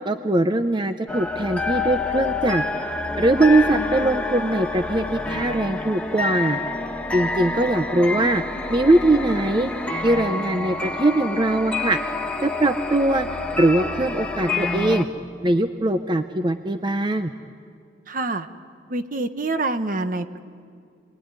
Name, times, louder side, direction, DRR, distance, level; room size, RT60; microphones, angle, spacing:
voice 1, 0.1-2.6 3.2-6.6 7.1-8.4 8.7-9.7 10.0-12.0 12.4-13.3 13.6-15.1 15.4-17.3, right 2 dB, 25° right, 8 dB, 0.7 m, -21 dB
sound 1, 1.1-15.0, left 3 dB, 5° left, 1.4 m, -28 dB
voice 2, 18.1-18.5 18.9-20.4, right 2 dB, 50° right, 9 dB, 1.1 m, -26 dB
28.0 x 21.5 x 9.7 m, 2.2 s
head